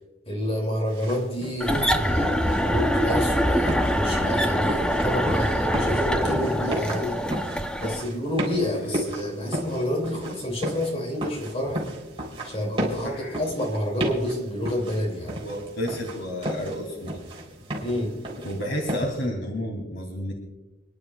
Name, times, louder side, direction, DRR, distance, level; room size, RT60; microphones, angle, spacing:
voice 1, 0.3-7.2 7.8-11.8 12.4-15.4 17.8-18.2, left 1 dB, 35° left, 1 dB, 2.8 m, -29 dB
sound 1, 0.9-19.2, equal, 30° right, 3.8 m, -34 dB
sound 2, 1.6-8.0, equal, 5° left, 0.8 m, -24 dB
voice 2, 13.0-13.4 15.4-17.2 18.4-20.3, equal, 90° left, 0 dB, 2.9 m, -31 dB
30.0 x 11.0 x 2.4 m, 1.0 s
head